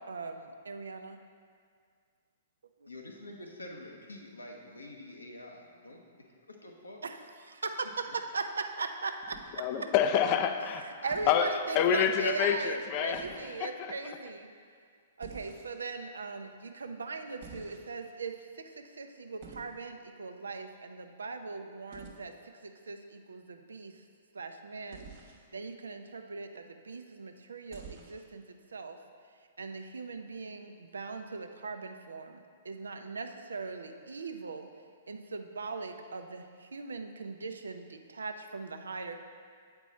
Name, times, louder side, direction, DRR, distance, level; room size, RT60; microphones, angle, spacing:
voice 1, 0.0-1.2 2.8-2.9 7.0-7.2 7.4-9.6 11.0-14.5 15.2-18.6 19.0-22.3 22.6-23.9 24.3-25.0 25.5-29.0 29.6-32.4 32.6-34.7 35.1-39.2, right 4 dB, 75° right, 6 dB, 0.5 m, -39 dB
voice 2, 2.9-7.0, left 1 dB, 80° left, 1 dB, 0.9 m, -47 dB
sound 1, 9.2-9.9 11.1-11.4 13.1-13.6 15.2-15.9 17.4-18.1 19.4-19.8 21.9-22.2 24.9-25.4 27.7-28.3, right 5 dB, 45° right, 1.0 m, -49 dB
voice 3, 9.6-14.1, left 8 dB, 35° left, 8 dB, 0.4 m, -28 dB
8.1 x 4.4 x 4.2 m, 2.1 s
figure-of-eight pair, 115°, 0 cm